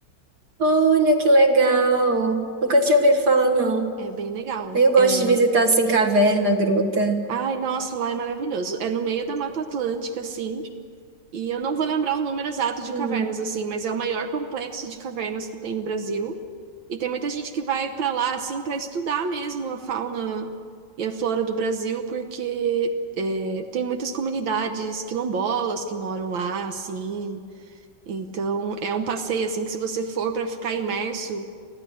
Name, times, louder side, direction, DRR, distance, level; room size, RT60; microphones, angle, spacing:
voice 1, 0.6-3.9 4.7-7.2 12.9-13.2, right 2 dB, 55° right, 3 dB, 2.1 m, -19 dB
voice 2, 4.0-5.4 7.3-10.6 11.3-16.4 16.9-20.5 21.0-27.4 28.1-31.5, right 5 dB, 80° right, 6 dB, 1.8 m, -27 dB
23.5 x 15.0 x 10.0 m, 2.1 s
omnidirectional pair, 2.1 m